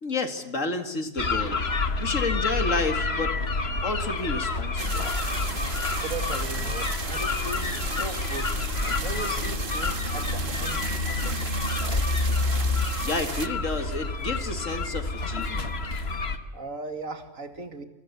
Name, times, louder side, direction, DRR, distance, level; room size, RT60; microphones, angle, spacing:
voice 1, 0.0-3.4 3.8-5.1 13.0-15.7, left 3 dB, 65° left, 7 dB, 2.5 m, -30 dB
sound 1, 1.2-16.4, left 3 dB, 45° left, 1.7 m, -28 dB
sound 2, 4.8-13.5, right 4 dB, 40° right, 1.6 m, -35 dB
voice 2, 6.0-8.5 9.0-11.6 16.5-17.8, right 3 dB, 70° right, 7 dB, 2.8 m, -38 dB
27.5 x 25.5 x 8.3 m, 0.89 s
omnidirectional pair, 1.4 m